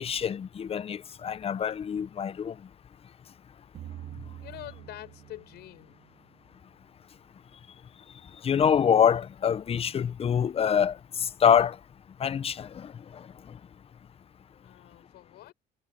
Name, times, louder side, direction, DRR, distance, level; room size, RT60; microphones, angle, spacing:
voice 1, 0.0-2.6 8.4-11.8 12.2-13.3, left 8 dB, 35° left, 0.7 m, -25 dB
sound 1, 3.7-6.9, right 11 dB, 65° right, 1.9 m, -46 dB
voice 2, 4.4-6.0 14.6-15.5, left 15 dB, 75° left, 7.1 m, -46 dB
cardioid pair, 110°, 17 cm